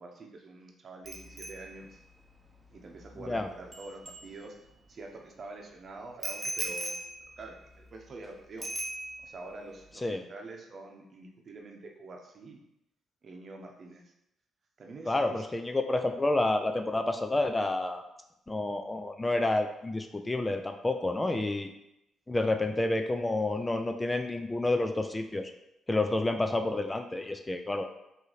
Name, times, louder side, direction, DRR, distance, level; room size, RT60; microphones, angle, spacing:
voice 1, 0.0-2.0 2.7-4.6 4.9-7.0 7.4-8.7 9.2-12.6 13.2-14.1 14.8-15.5, right 3 dB, 45° right, 2 dB, 0.8 m, -46 dB
Bicycle bell, 1.1-4.9 6.2-8.3 8.6-9.5 9.8-10.0, right 2 dB, 15° right, 0.8 m, -40 dB
voice 2, 15.1-18.0 18.5-21.7 22.3-25.5 25.9-27.9, left 2 dB, 15° left, 7 dB, 0.3 m, -29 dB
4.7 x 2.7 x 4.0 m, 0.85 s
cardioid pair, 90°, 0 cm